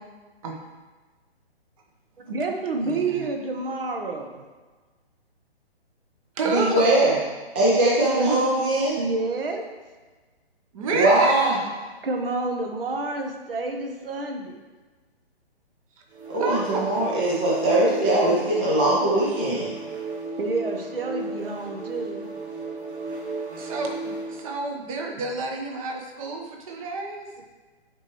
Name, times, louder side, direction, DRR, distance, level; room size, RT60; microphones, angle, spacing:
voice 1, 2.2-4.4 9.0-9.6 12.0-14.6 20.4-22.3, right 3 dB, 60° right, 4 dB, 1.1 m, -29 dB
voice 2, 2.8-3.3 6.4-6.8 10.7-11.2 16.4-16.8 23.5-27.3, right 3 dB, 30° right, 2 dB, 1.0 m, -29 dB
voice 3, 6.5-7.2 7.5-9.0 10.9-11.6 16.3-19.7, right 1 dB, 10° right, -6 dB, 0.4 m, -21 dB
sound 1, 16.1-24.5, right 3 dB, 85° right, 1.7 m, -34 dB
9.6 x 4.6 x 3.1 m, 1.3 s
hypercardioid pair, 150°, 32 cm